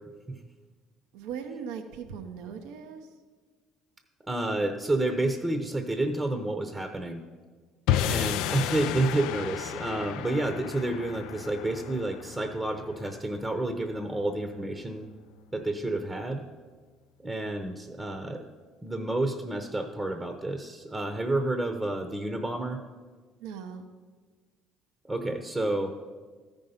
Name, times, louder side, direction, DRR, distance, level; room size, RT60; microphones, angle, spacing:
voice 1, 1.1-3.2 23.4-23.8, right 7 dB, 80° right, 6 dB, 0.8 m, -39 dB
voice 2, 4.2-7.2 8.0-15.1 15.5-16.4 17.2-18.4 18.8-22.8 25.0-26.0, right 2 dB, 20° right, 6 dB, 0.8 m, -30 dB
sound 1, 7.9-14.2, left 11 dB, 80° left, 0.3 m, -33 dB
13.5 x 5.4 x 5.6 m, 1.4 s
supercardioid pair, 80°, 0 cm